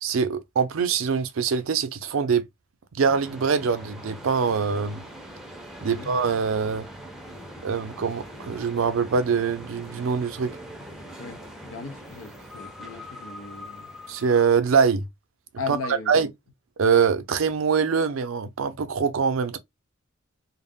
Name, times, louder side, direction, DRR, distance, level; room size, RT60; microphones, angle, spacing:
voice 1, 0.0-2.4 2.9-5.0 5.8-6.9 7.6-10.5 14.1-15.0 15.7-15.8 16.1-16.3 16.8-19.6, right 6 dB, 75° right, 0.4 m, -23 dB
sound 1, 3.0-14.5, equal, ahead, 0.6 m, -42 dB
voice 2, 11.2-13.9 15.6-16.1, left 4 dB, 80° left, 0.6 m, -37 dB
2.3 x 2.0 x 3.4 m
head